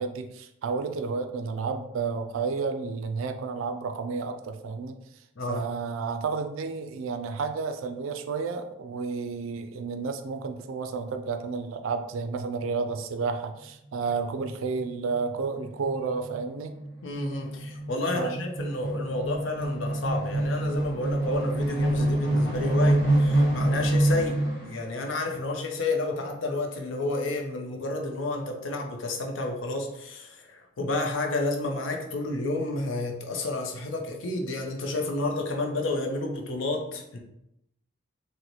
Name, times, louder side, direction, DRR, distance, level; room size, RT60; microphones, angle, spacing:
voice 1, 0.0-5.0 5.5-16.7 18.2-18.4, right 4 dB, 85° right, 7 dB, 0.3 m, -31 dB
voice 2, 5.4-5.7 17.0-37.2, left 2 dB, 75° left, 3 dB, 0.6 m, -30 dB
sound 1, 14.3-14.4 14.7-14.9 15.1-24.8, right 1 dB, 55° left, 1.0 m, -26 dB
3.9 x 2.1 x 3.0 m, 0.82 s
head